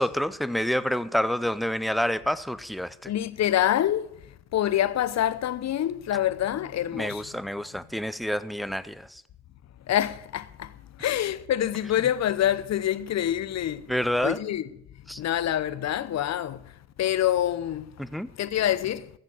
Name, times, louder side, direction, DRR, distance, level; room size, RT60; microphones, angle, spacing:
voice 1, 0.0-3.1 6.9-9.2 13.9-14.4 15.1-15.2 18.0-18.3, equal, ahead, 0.5 m, -28 dB
voice 2, 3.1-4.2 4.5-7.3 9.9-10.7 11.0-13.9 14.2-14.7 15.2-16.7 17.0-17.9 18.4-19.1, left 11 dB, 40° left, 0.8 m, -26 dB
14.5 x 6.7 x 7.4 m
hypercardioid pair, 60°, 40 cm